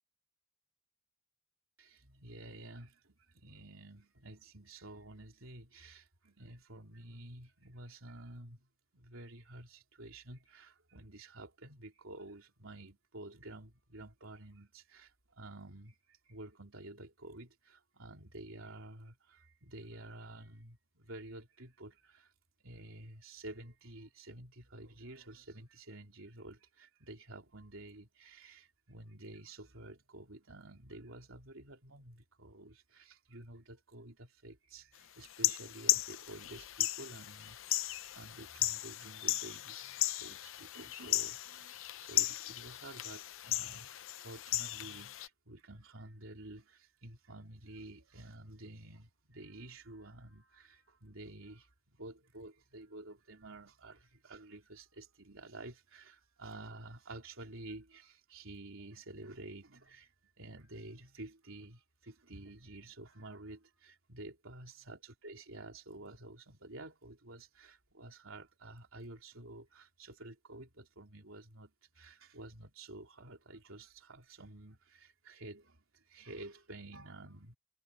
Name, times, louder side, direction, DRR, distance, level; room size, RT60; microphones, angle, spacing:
voice 1, 1.8-8.7 8.9-22.3 22.6-60.1 60.4-77.6, right 2 dB, 75° right, 3.6 m, -51 dB
sound 1, 35.2-45.3, left 14 dB, 70° left, 0.6 m, -36 dB
head